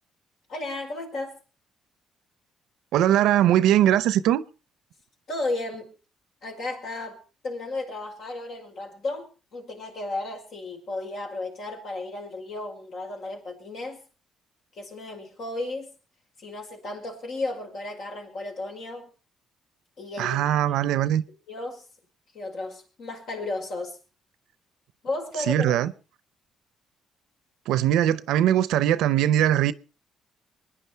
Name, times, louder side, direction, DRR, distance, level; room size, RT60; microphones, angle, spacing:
voice 1, 0.5-1.4 5.3-5.9 6.4-14.0 14.7-15.9 16.4-19.1 20.0-20.5 21.5-21.8 22.3-24.0 25.0-25.9, left 2 dB, 70° left, 5.2 m, -34 dB
voice 2, 2.9-4.4 20.2-21.2 25.5-25.9 27.7-29.7, right 11 dB, 90° right, 0.7 m, -21 dB
24.0 x 10.0 x 4.5 m
cardioid pair, 90°, 0 cm